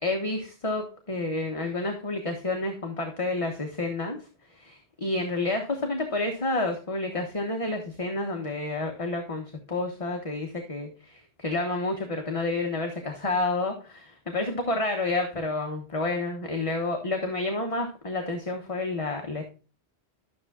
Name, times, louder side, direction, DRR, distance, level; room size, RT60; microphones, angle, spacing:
voice 1, 0.0-4.2 4.5-19.4, left 2 dB, 30° left, 3 dB, 1.2 m, -29 dB
12.5 x 6.9 x 2.4 m, 0.34 s
omnidirectional pair, 1.1 m